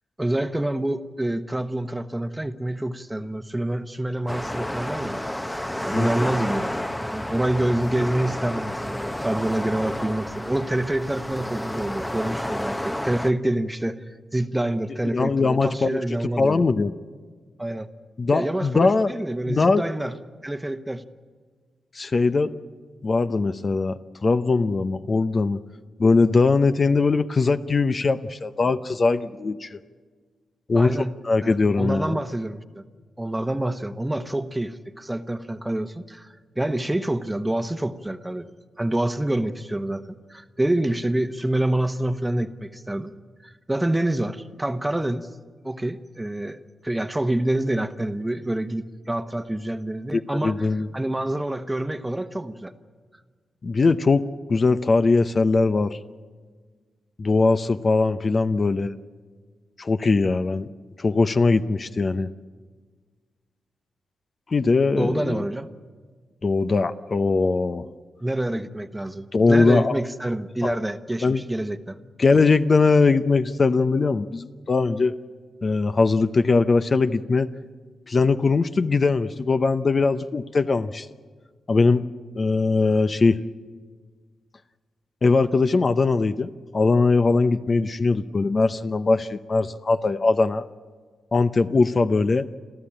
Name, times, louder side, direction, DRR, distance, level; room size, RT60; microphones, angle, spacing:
voice 1, 0.2-5.2 5.8-6.7 7.0-16.6 17.6-17.9 18.3-20.1 20.4-21.0 30.7-31.2 31.4-32.8 33.2-38.5 38.8-43.1 43.4-45.3 45.6-46.6 46.8-50.7 50.9-52.7 65.0-65.7 68.2-72.0, right 1 dB, 10° right, 10 dB, 1.1 m, -27 dB
sound 1, 4.3-13.3, left 1 dB, 10° left, 0.8 m, -30 dB
voice 2, 15.1-16.0 16.4-16.9 18.2-19.1 19.5-19.8 21.9-22.5 23.0-25.6 26.0-29.8 30.7-31.0 31.2-32.1 50.1-50.9 53.6-54.2 54.5-56.0 57.2-58.9 59.8-60.7 61.0-62.3 64.5-65.4 66.4-67.9 69.3-70.0 70.6-70.8 71.2-71.4 72.2-75.2 75.6-77.5 78.1-81.1 81.7-82.0 82.3-83.4 85.2-90.7 91.3-92.5, left 3 dB, 40° left, 11 dB, 0.7 m, -21 dB
29.5 x 13.0 x 8.8 m, 1.6 s
cardioid pair, 70°, 0 cm